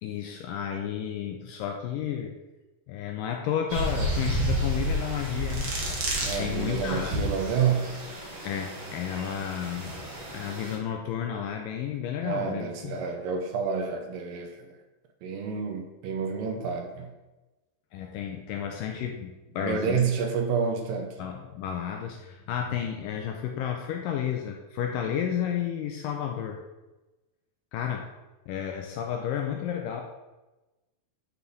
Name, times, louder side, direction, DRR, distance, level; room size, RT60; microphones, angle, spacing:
voice 1, 0.0-2.4 2.9-6.0 6.4-7.3 8.4-10.1 10.3-13.0 17.9-20.1 21.2-26.6 27.7-28.1 28.5-30.0, left 9 dB, 80° left, 3 dB, 2.0 m, -32 dB
sound 1, 3.7-10.8, right 1 dB, 45° right, 1.5 m, -31 dB
voice 2, 6.2-7.9 12.2-14.8 15.2-17.1 19.6-21.2, right 6 dB, 75° right, 4 dB, 2.3 m, -29 dB
9.4 x 5.7 x 4.0 m, 1.1 s
omnidirectional pair, 4.4 m